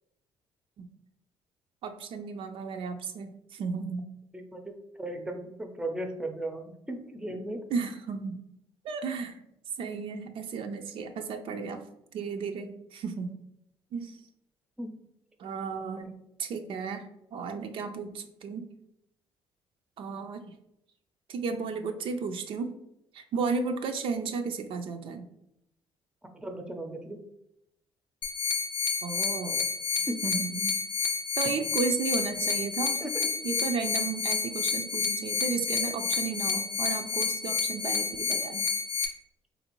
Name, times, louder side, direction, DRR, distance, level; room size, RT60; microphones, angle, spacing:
voice 1, 1.8-4.0 7.7-8.4 8.8-9.4 9.8-11.8 12.1-13.3 13.9-14.2 15.4-16.1 16.4-17.1 17.3-18.7 20.0-20.5 21.3-22.7 23.1-25.3 29.0-29.7 29.9-30.7 31.4-33.0 33.4-38.7, right 5 dB, 65° right, 6 dB, 0.4 m, -34 dB
voice 2, 4.3-7.6 14.8-14.9 26.3-27.2 30.1-30.2 33.0-33.3, right 1 dB, 10° right, 5 dB, 0.5 m, -36 dB
sound 1, 28.2-39.1, left 6 dB, 50° left, 0.5 m, -29 dB
3.6 x 2.5 x 3.0 m, 0.81 s
cardioid pair, 100°, 10 cm